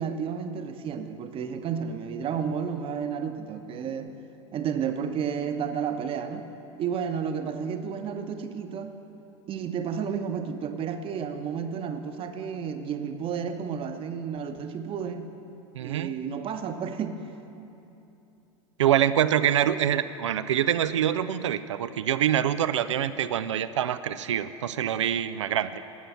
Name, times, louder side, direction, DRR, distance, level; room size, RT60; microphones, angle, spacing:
voice 1, 0.0-4.1 4.5-6.5 6.8-8.9 9.5-15.3 15.8-17.3, right 7 dB, 35° right, 8 dB, 1.0 m, -31 dB
voice 2, 15.7-16.1 18.8-25.8, right 10 dB, 75° right, 14 dB, 0.5 m, -25 dB
18.5 x 7.6 x 5.8 m, 2.9 s
figure-of-eight pair, 80°, 16 cm